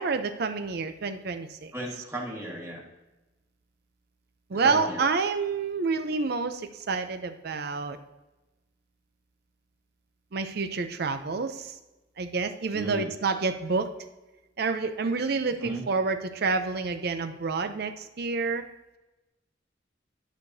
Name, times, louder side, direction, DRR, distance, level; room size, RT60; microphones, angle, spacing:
voice 1, 0.0-1.7 4.5-8.0 10.3-11.7 12.2-13.9 14.6-18.6, right 4 dB, 55° right, 8 dB, 0.5 m, -28 dB
voice 2, 1.7-2.8 4.5-5.0 12.7-13.1 15.6-15.8, right 1 dB, 15° right, -2 dB, 1.4 m, -35 dB
11.5 x 6.5 x 2.7 m, 1.1 s
head